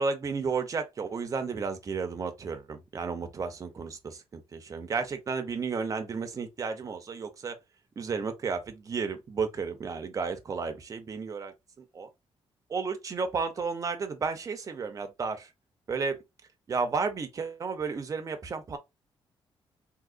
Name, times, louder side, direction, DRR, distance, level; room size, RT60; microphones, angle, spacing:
voice 1, 0.0-7.6 8.0-12.1 12.7-15.5 15.9-16.2 16.7-18.8, right 5 dB, 35° right, 0.6 m, -33 dB
3.8 x 2.7 x 2.5 m
wide cardioid pair, 155°, 10 cm